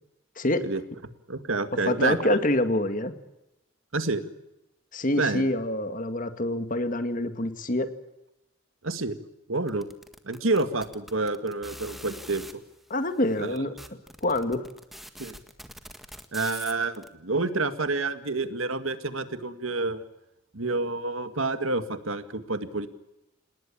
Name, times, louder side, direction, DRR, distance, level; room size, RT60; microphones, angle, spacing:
voice 1, 0.4-0.7 1.9-3.1 4.9-7.9 12.9-13.7 14.2-14.7, left 1 dB, 40° left, 9 dB, 1.9 m, -26 dB
voice 2, 1.3-2.3 3.9-4.3 5.2-5.4 8.8-9.2 9.5-9.9 10.2-12.5 13.4-13.5 15.2-15.4 16.3-20.0 20.5-22.9, right 3 dB, 85° right, 10 dB, 2.0 m, -28 dB
sound 1, 9.7-12.5 13.2-13.3 13.5-17.1, equal, ahead, 1.7 m, -43 dB
28.5 x 19.0 x 8.7 m, 0.94 s
head